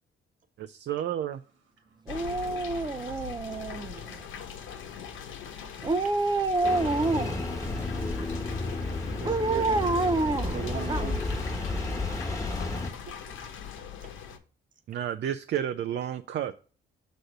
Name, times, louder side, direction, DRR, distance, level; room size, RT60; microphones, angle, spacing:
voice 1, 0.6-1.4 14.9-16.5, right 10 dB, 65° right, 0.6 m, -31 dB
voice 2, 1.3-2.0 4.1-4.3 9.3-9.6, right 5 dB, 80° right, 2.1 m, -70 dB
sound 1, 2.1-14.4, left 7 dB, 80° left, 1.2 m, -41 dB
Dog, 2.1-4.1 5.8-7.5 9.2-11.4 11.7-11.8, right 2 dB, 20° right, 0.6 m, -28 dB
Engine starting, 6.6-12.9, left 2 dB, 15° left, 1.5 m, -32 dB
voice 3, 7.6-8.2 9.2-9.9 10.3-11.5 13.1-13.5 14.0-14.1, right 6 dB, 40° right, 1.2 m, -40 dB
6.4 x 4.2 x 6.5 m
cardioid pair, 90°, 20 cm